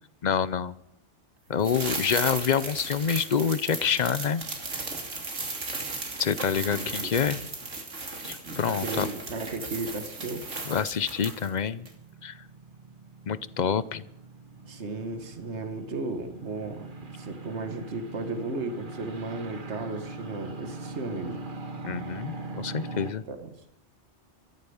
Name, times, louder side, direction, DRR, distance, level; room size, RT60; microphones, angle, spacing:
voice 1, 0.2-0.7 1.5-4.4 6.2-7.4 8.2-9.1 10.7-11.9 12.2-12.4 13.3-14.0 21.8-23.2, left 7 dB, 45° left, 17 dB, 0.6 m, -27 dB
sound 1, 1.6-11.6 11.9-12.0, right 3 dB, 90° right, 2.9 m, -36 dB
voice 2, 6.7-7.5 8.7-10.5 14.6-21.5 23.0-23.5, right 3 dB, 70° right, 7 dB, 1.9 m, -35 dB
sound 2, 9.1-23.1, right 3 dB, 45° right, 1.6 m, -42 dB
14.0 x 13.5 x 7.1 m, 0.80 s
omnidirectional pair, 1.2 m